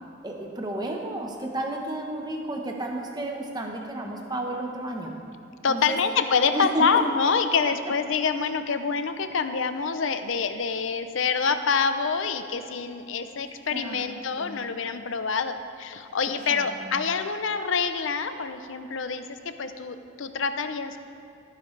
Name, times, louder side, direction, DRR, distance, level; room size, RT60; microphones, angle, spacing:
voice 1, 0.2-5.1 5.7-6.0 6.5-6.8 13.4-14.1 14.4-14.6 16.5-17.1, right 1 dB, 20° right, 1 dB, 1.0 m, -32 dB
voice 2, 5.6-21.0, left 5 dB, 65° left, 9 dB, 0.6 m, -26 dB
17.0 x 9.8 x 3.3 m, 2.6 s
head